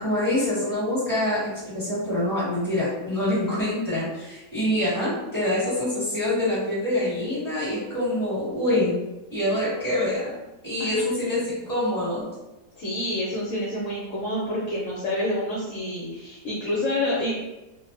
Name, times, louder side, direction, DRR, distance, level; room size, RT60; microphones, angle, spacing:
voice 1, 0.0-8.9 9.3-10.3 10.6-12.2, left 1 dB, 15° left, -10 dB, 1.3 m, -25 dB
voice 2, 12.8-17.3, left 1 dB, 65° left, -5 dB, 0.8 m, -28 dB
2.5 x 2.2 x 2.5 m, 1.0 s
omnidirectional pair, 1.7 m